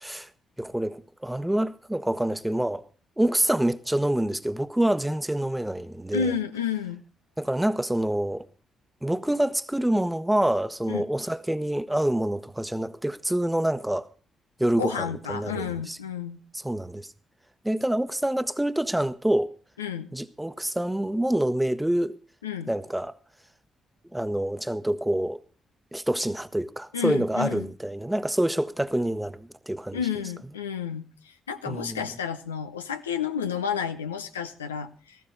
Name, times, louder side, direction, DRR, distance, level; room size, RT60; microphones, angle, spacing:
voice 1, 0.6-2.8 3.2-6.3 7.4-8.5 9.0-14.1 14.6-16.0 16.5-17.1 17.6-19.5 20.1-22.2 22.7-23.1 24.1-25.4 25.9-30.0 31.7-32.1, right 1 dB, 10° right, 1.1 m, -26 dB
voice 2, 6.1-7.0 10.9-11.1 14.8-16.4 19.8-20.1 22.4-22.7 26.9-27.7 29.9-35.2, left 7 dB, 90° left, 0.7 m, -31 dB
16.5 x 15.0 x 3.8 m
hypercardioid pair, 40°, 0 cm